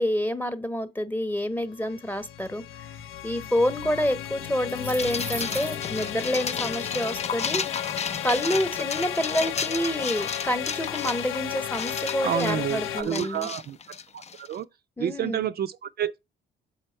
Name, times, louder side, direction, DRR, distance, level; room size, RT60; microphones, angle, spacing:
voice 1, 0.0-3.0 3.2-7.6 8.2-13.5 15.0-15.5, equal, 10° left, 1.0 m, -28 dB
sound 1, 1.6-13.0, left 12 dB, 75° left, 0.6 m, -34 dB
sound 2, 4.5-6.1, right 2 dB, 10° right, 0.7 m, -38 dB
sound 3, 5.0-14.5, left 6 dB, 35° left, 0.5 m, -33 dB
voice 2, 12.2-13.8 14.1-14.7 15.0-16.2, right 10 dB, 50° right, 0.4 m, -29 dB
7.0 x 4.4 x 4.4 m
cardioid pair, 90°, 20 cm